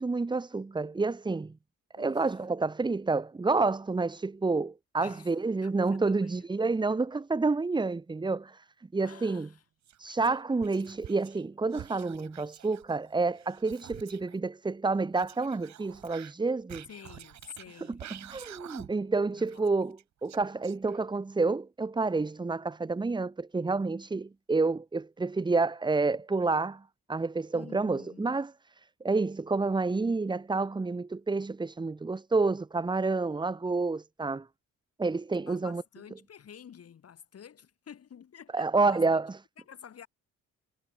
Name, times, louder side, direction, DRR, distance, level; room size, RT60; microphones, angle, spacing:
voice 1, 0.0-1.6 1.9-8.6 8.9-9.5 10.0-16.9 17.9-26.8 27.1-34.5 35.0-35.8 38.5-39.4, right 3 dB, 15° right, 0.8 m, -29 dB
voice 2, 1.9-2.3 5.0-5.3 5.6-6.5 9.0-9.6 10.8-10.9 16.9-18.1 19.3-19.7 27.5-28.3 35.4-39.0 39.6-40.1, left 8 dB, 55° left, 3.1 m, -50 dB
Whispering, 9.8-11.4 11.7-14.4 15.1-19.1 19.4-21.2, right 11 dB, 65° right, 1.6 m, -49 dB
cardioid pair, 90°, 30 cm